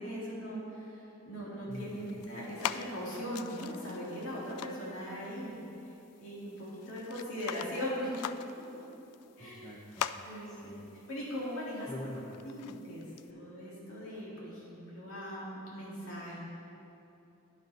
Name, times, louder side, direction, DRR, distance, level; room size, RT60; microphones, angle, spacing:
voice 1, 0.0-5.6 6.2-8.1 9.4-9.7 10.2-10.8 11.1-11.9 12.4-16.4, equal, 65° left, -6 dB, 2.2 m, -40 dB
sound 1, 1.7-13.3, left 10 dB, 85° left, 0.3 m, -44 dB
voice 2, 1.7-2.2 9.4-10.1 10.5-10.8 11.9-12.3, left 1 dB, 15° left, -4 dB, 0.8 m, -45 dB
10.0 x 5.8 x 5.4 m, 2.9 s
head